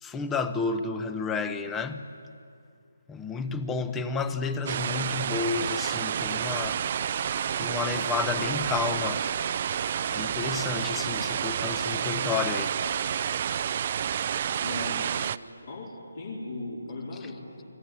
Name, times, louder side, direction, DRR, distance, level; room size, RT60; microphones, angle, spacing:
voice 1, 0.0-2.0 3.1-6.8 7.6-9.3 10.1-12.7, left 4 dB, 10° left, 1.0 m, -31 dB
sound 1, 4.7-15.4, right 8 dB, 40° right, 0.6 m, -29 dB
voice 2, 14.6-15.3 15.6-17.6, left 2 dB, 55° left, 4.6 m, -38 dB
29.5 x 20.5 x 9.3 m
figure-of-eight pair, 155°, 0 cm